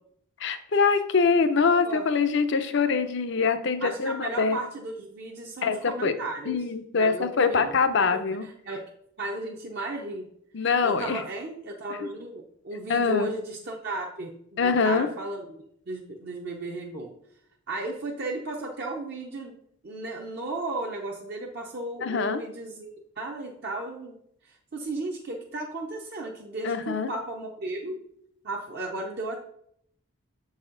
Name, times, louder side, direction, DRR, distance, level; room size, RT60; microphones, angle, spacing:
voice 1, 0.4-4.6 5.6-6.1 6.5-8.5 10.5-11.2 12.0-12.1 12.9-13.3 14.6-15.1 22.0-22.4 26.6-27.1, left 5 dB, 55° left, 10 dB, 0.5 m, -24 dB
voice 2, 3.8-6.6 6.9-7.8 8.1-8.9 9.2-10.3 10.8-15.5 15.9-17.1 17.7-19.5 19.8-24.2 24.4-28.0 28.4-29.4, right 2 dB, 45° right, 0 dB, 0.6 m, -35 dB
6.9 x 4.1 x 3.7 m, 0.71 s
head